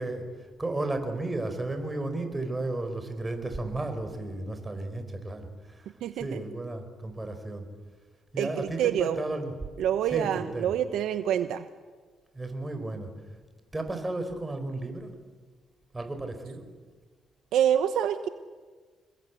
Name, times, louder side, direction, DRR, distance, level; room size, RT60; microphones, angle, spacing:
voice 1, 0.0-7.7 8.3-9.5 10.0-10.7 12.3-13.1 13.7-15.1 15.9-16.7, right 2 dB, 15° right, 7 dB, 4.7 m, -34 dB
voice 2, 6.0-6.4 8.4-9.2 9.8-11.7 17.5-18.3, right 10 dB, 80° right, 10 dB, 0.9 m, -26 dB
26.5 x 21.0 x 8.4 m, 1.4 s
cardioid pair, 90°, 0 cm